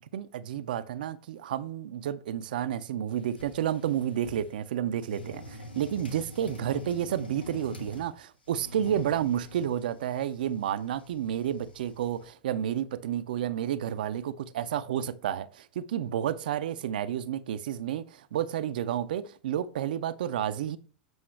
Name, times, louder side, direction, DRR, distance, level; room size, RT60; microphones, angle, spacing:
voice 1, 0.1-20.8, right 10 dB, 65° right, 0.4 m, -31 dB
sound 1, 3.1-4.6 5.0-8.1 8.5-12.3, left 2 dB, 85° left, 1.1 m, -45 dB
7.8 x 5.3 x 3.1 m
figure-of-eight pair, 95°, 5 cm